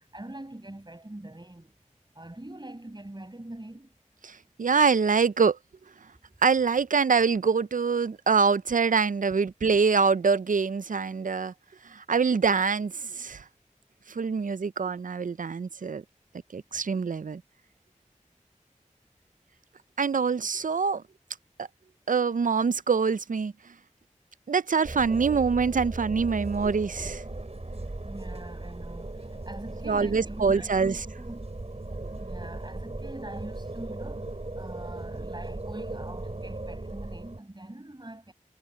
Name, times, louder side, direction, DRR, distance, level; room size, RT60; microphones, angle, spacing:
voice 1, 0.1-1.7 2.1-3.9 28.0-31.5 32.1-38.3, right 1 dB, 35° right, 6.5 m, -43 dB
voice 2, 4.2-5.6 6.4-11.5 11.9-13.4 14.1-16.0 16.5-17.4 20.0-21.0 22.1-23.5 24.5-27.2 29.8-31.0, right 5 dB, 85° right, 0.4 m, -25 dB
sound 1, 24.8-37.4, right 2 dB, 50° right, 7.4 m, -37 dB
wide cardioid pair, 45°, 13 cm